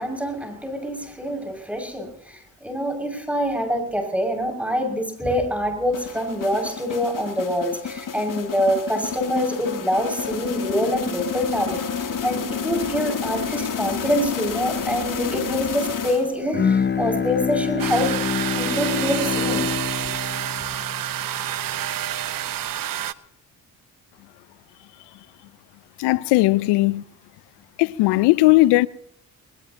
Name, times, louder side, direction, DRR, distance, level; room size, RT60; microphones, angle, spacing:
voice 1, 0.0-18.1 18.5-19.7 20.0-20.1, equal, 5° right, 6.4 m, -25 dB
sound 1, 5.9-16.6, left 7 dB, 50° left, 2.9 m, -30 dB
Bowed string instrument, 16.5-22.0, left 6 dB, 25° left, 0.9 m, -26 dB
sound 2, 17.8-23.1, right 11 dB, 55° right, 0.9 m, -28 dB
voice 2, 26.0-27.0 27.8-28.9, left 19 dB, 75° left, 0.7 m, -17 dB
21.0 x 21.0 x 2.9 m
hypercardioid pair, 50°, 40 cm